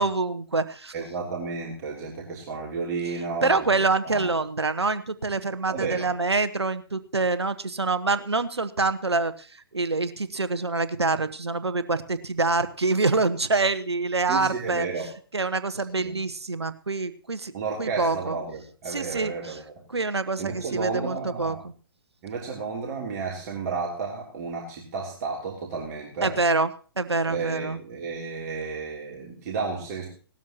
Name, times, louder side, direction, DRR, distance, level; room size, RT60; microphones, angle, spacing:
voice 1, 0.0-0.9 3.4-9.5 9.7-14.9 15.3-17.5 17.8-18.4 18.9-19.6 19.9-21.6 26.2-26.7 27.0-27.8, right 3 dB, 90° right, 12 dB, 1.1 m, -26 dB
voice 2, 0.9-3.7 4.0-4.3 5.7-6.1 14.3-15.1 16.0-16.2 17.5-19.6 20.4-21.6 22.2-26.4 27.2-30.1, right 4 dB, 40° right, -2 dB, 3.1 m, -32 dB
18.0 x 13.0 x 2.9 m, 0.38 s
figure-of-eight pair, 130°, 13 cm